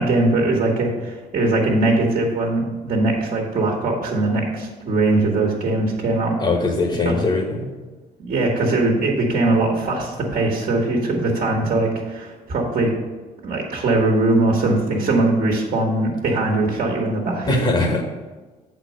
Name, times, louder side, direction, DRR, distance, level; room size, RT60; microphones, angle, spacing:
voice 1, 0.0-6.4 7.0-7.2 8.2-12.9 13.4-17.6, right 2 dB, 50° right, -1 dB, 1.6 m, -21 dB
voice 2, 6.4-7.7 17.5-18.0, left 2 dB, 30° left, 2 dB, 1.2 m, -21 dB
7.6 x 4.5 x 6.4 m, 1.3 s
cardioid pair, 110°, 17 cm